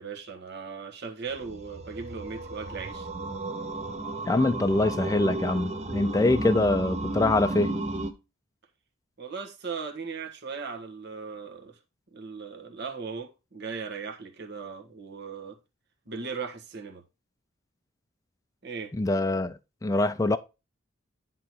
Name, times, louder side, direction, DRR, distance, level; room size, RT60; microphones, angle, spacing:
voice 1, 0.0-3.1 9.2-11.8 12.1-15.6 16.1-17.0 18.6-18.9, right 5 dB, 55° right, 1.5 m, -38 dB
sound 1, 1.3-8.1, right 2 dB, 35° right, 0.9 m, -33 dB
voice 2, 4.3-7.7 18.9-20.4, left 2 dB, 15° left, 0.4 m, -24 dB
10.0 x 3.8 x 4.5 m
head